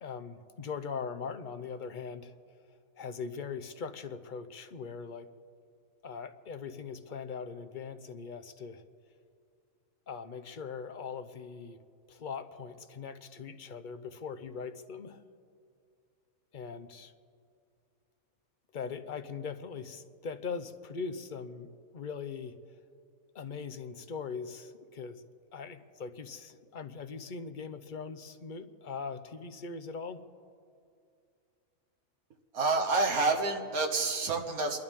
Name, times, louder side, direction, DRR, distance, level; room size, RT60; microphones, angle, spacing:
voice 1, 0.0-2.3 3.0-5.3 6.0-8.8 10.1-11.8 12.1-15.2 16.5-17.1 18.7-22.6 23.3-25.2 25.5-30.2, left 5 dB, 45° left, 9 dB, 0.7 m, -41 dB
voice 2, 32.5-34.8, right 3 dB, 80° right, 4 dB, 1.6 m, -28 dB
29.5 x 11.5 x 3.6 m, 2.4 s
omnidirectional pair, 1.5 m